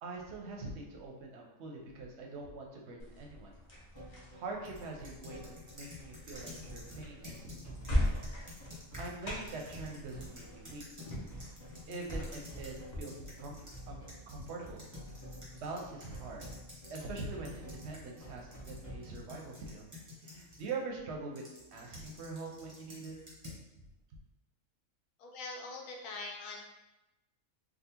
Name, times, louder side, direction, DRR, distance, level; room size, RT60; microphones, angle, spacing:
voice 1, 0.0-3.5 4.3-8.2 8.7-10.8 11.9-14.9 15.5-16.5 16.9-19.9 20.2-23.1, right 3 dB, 60° right, 0 dB, 0.8 m, -44 dB
sound 1, 3.0-13.0, left 1 dB, 40° left, 0.6 m, -40 dB
sound 2, 3.9-19.0, equal, 15° left, 1.0 m, -50 dB
sound 3, 4.6-13.8 14.1-20.8 21.4-23.6, left 2 dB, 15° right, 0.7 m, -51 dB
voice 2, 25.2-26.6, left 3 dB, 75° left, 0 dB, 1.0 m, -43 dB
3.6 x 2.2 x 2.8 m, 0.97 s
omnidirectional pair, 1.5 m